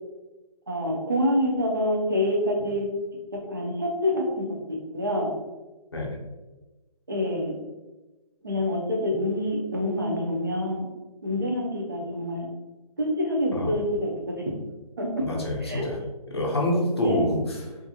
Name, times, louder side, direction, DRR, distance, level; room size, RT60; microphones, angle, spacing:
voice 1, 0.7-2.9 3.3-5.4 7.1-7.6 8.4-10.9 11.2-12.5 13.0-14.6 15.0-15.3 15.6-15.9 17.0-17.3, left 1 dB, 35° right, 0 dB, 0.4 m, -27 dB
voice 2, 15.2-16.0 16.3-17.7, left 1 dB, 40° left, -2 dB, 0.6 m, -26 dB
2.5 x 2.4 x 2.6 m, 1.1 s
hypercardioid pair, 180°, 19 cm